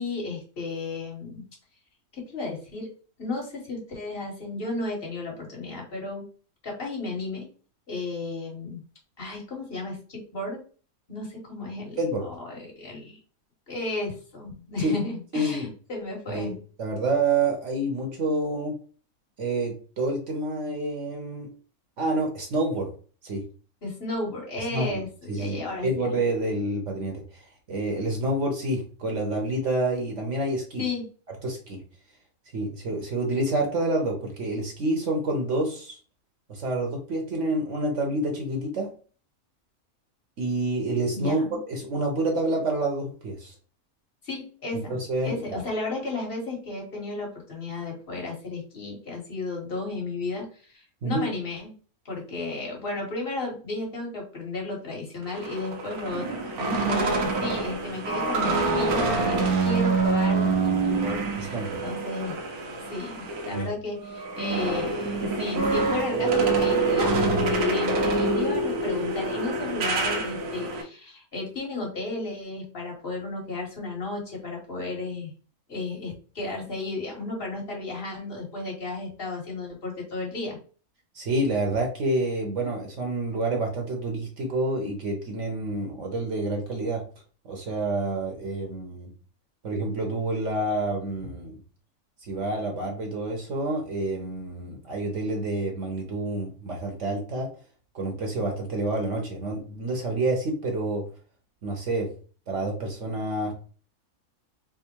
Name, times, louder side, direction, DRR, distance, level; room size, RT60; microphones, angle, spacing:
voice 1, 0.0-1.4 2.1-2.9 3.2-6.2 6.6-7.5 7.9-8.8 9.2-10.6 11.1-12.0 12.3-13.2 13.7-16.5 23.8-26.1 30.8-31.1 41.1-41.6 44.2-51.7 52.0-61.5 61.8-62.3 62.9-75.3 75.7-80.6, left 3 dB, 40° left, -1 dB, 1.6 m, -33 dB
voice 2, 12.0-12.3 14.8-14.9 15.3-15.7 16.3-18.7 19.4-21.5 22.0-22.9 23.2-23.4 24.7-25.0 25.3-30.8 31.4-31.8 32.5-36.0 36.5-38.9 40.4-41.4 41.7-43.5 44.7-45.6 51.0-51.3 61.4-61.8 63.5-63.7 81.1-87.0 87.4-89.1 89.6-91.6 92.2-97.5 97.9-101.0 101.6-102.1 102.5-103.5, right 2 dB, 60° right, 1 dB, 1.1 m, -28 dB
sound 1, 55.2-63.6 64.0-70.8, right 3 dB, 80° right, 1.3 m, -26 dB
3.6 x 2.1 x 4.4 m, 0.39 s
omnidirectional pair, 1.5 m